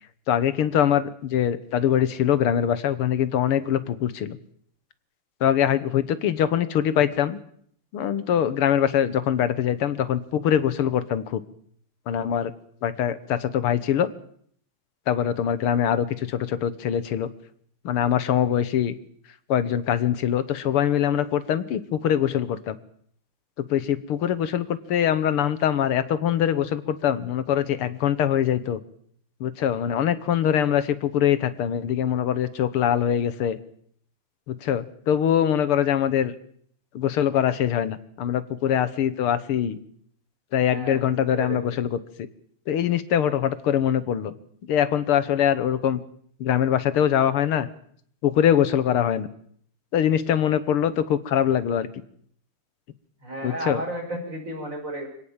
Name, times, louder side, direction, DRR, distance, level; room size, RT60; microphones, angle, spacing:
voice 1, 0.3-4.4 5.4-7.4 7.9-11.4 12.1-12.5 12.8-14.1 15.1-17.3 17.8-18.9 19.5-22.8 23.6-28.8 29.4-33.6 34.5-36.3 36.9-39.8 40.5-42.3 42.7-44.3 44.6-46.0 46.4-47.7 48.2-49.3 49.9-51.9 53.4-53.8, left 9 dB, 80° left, 14 dB, 2.0 m, -23 dB
voice 2, 40.6-41.6 53.2-55.1, right 1 dB, 35° right, 2 dB, 6.0 m, -33 dB
25.5 x 17.5 x 7.3 m, 0.63 s
omnidirectional pair, 2.4 m